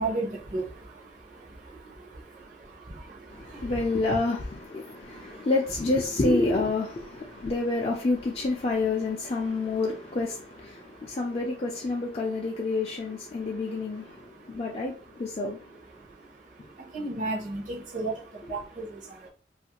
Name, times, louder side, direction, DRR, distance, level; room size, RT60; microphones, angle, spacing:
voice 1, 0.0-4.2 4.8-5.5 7.2-7.5 9.3-9.8 10.7-11.4 12.5-12.8 13.1-19.3, right 2 dB, 45° right, 0.7 m, -38 dB
voice 2, 3.3-15.6, left 3 dB, 35° left, 0.4 m, -28 dB
2.5 x 2.4 x 2.9 m
head